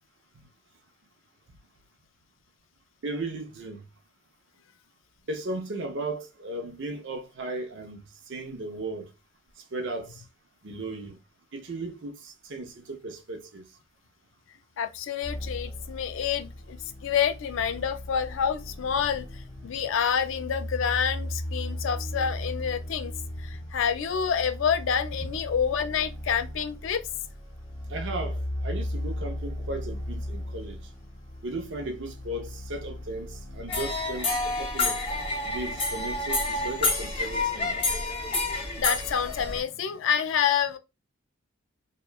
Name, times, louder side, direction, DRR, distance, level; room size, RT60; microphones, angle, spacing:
voice 1, 3.0-3.9 5.3-9.1 9.7-10.2 10.6-11.2 11.5-13.6 27.9-30.8 31.4-35.0 35.4-37.8, right 2 dB, 60° right, 0.6 m, -36 dB
voice 2, 14.8-23.1 23.4-27.0 38.8-40.8, left 7 dB, 65° left, 0.3 m, -28 dB
sound 1, 15.2-33.9, left 1 dB, 15° right, 0.9 m, -37 dB
sound 2, 33.7-39.6, left 2 dB, 25° left, 0.6 m, -28 dB
2.9 x 2.2 x 2.2 m
head